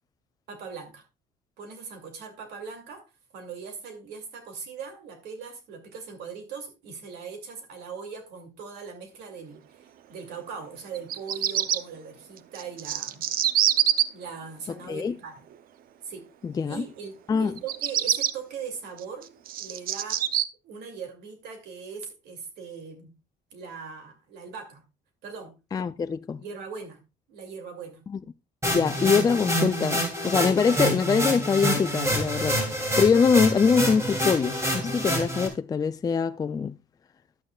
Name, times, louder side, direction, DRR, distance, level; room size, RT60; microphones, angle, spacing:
voice 1, 0.5-1.0 1.6-3.0 3.3-13.2 14.1-15.4 16.0-16.2 16.6-19.3 19.6-20.2 20.6-23.1 23.5-24.8 25.2-25.5 26.4-27.0 27.3-28.0, right 6 dB, 80° right, 2.5 m, -40 dB
Bird vocalization bird call bird song, 10.9-11.8 12.5-14.0 17.6-18.3 19.0-20.4, right 11 dB, 60° right, 0.6 m, -24 dB
voice 2, 16.4-16.8 17.3-17.5 25.7-26.4 28.1-28.2 28.7-32.6 33.0-36.8, left 6 dB, 20° left, 0.4 m, -23 dB
sound 1, 28.6-35.5, equal, 15° right, 2.8 m, -27 dB
11.5 x 8.7 x 2.3 m
cardioid pair, 110°, 17 cm